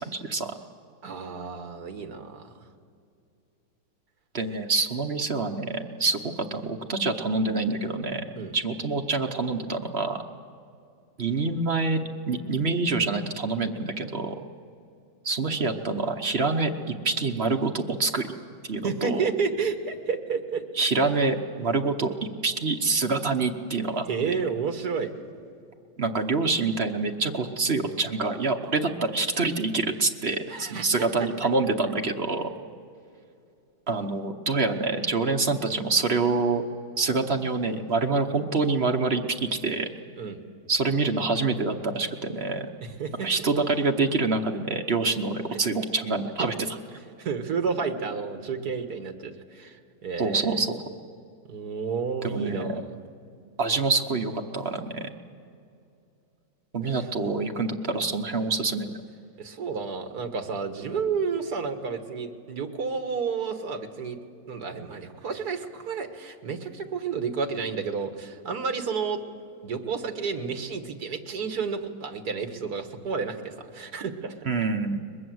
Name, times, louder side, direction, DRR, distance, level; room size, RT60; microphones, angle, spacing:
voice 1, 1.0-2.5 8.4-8.5 18.8-20.6 24.1-25.1 30.5-31.3 40.2-40.4 42.8-43.5 45.5-45.6 47.2-50.6 51.5-52.8 56.9-57.0 59.4-64.2 64.5-69.2 69.6-74.3, right 5 dB, 65° right, 6 dB, 2.0 m, -31 dB
voice 2, 4.3-8.2 8.5-10.2 11.2-14.3 15.2-18.3 18.7-19.3 20.8-22.1 22.4-24.4 26.0-32.5 33.9-36.6 37.0-39.9 40.7-42.7 43.2-46.5 50.2-50.8 52.2-52.8 53.6-55.1 56.7-58.9 74.5-75.0, right 3 dB, 40° right, 4 dB, 1.1 m, -26 dB
22.5 x 21.5 x 7.8 m, 2.5 s
omnidirectional pair, 1.9 m